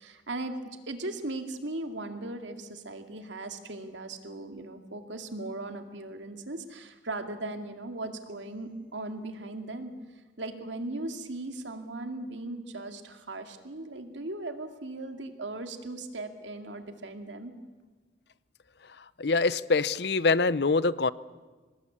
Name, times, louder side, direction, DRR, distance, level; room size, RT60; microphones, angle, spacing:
voice 1, 0.0-9.9 10.4-17.6, right 2 dB, 85° right, 6 dB, 2.3 m, -38 dB
voice 2, 19.2-21.1, left 3 dB, 65° left, 18 dB, 0.6 m, -24 dB
24.5 x 19.5 x 8.6 m, 1.3 s
head